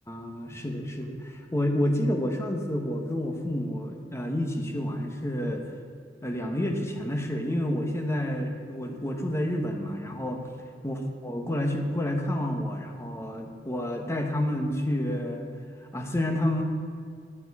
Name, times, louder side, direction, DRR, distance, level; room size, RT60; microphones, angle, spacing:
voice 1, 0.1-5.6 6.2-10.5 10.8-15.5 15.9-16.6, left 1 dB, 15° left, 3 dB, 1.1 m, -29 dB
11.0 x 9.4 x 4.8 m, 2.2 s
head